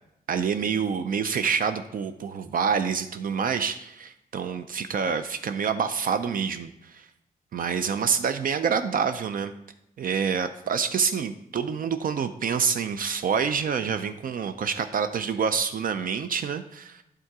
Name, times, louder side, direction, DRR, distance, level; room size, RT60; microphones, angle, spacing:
voice 1, 0.3-7.1 7.5-9.5 10.0-17.0, right 6 dB, 65° right, 9 dB, 0.4 m, -27 dB
9.0 x 3.7 x 4.7 m, 0.81 s
wide cardioid pair, 145°, 16 cm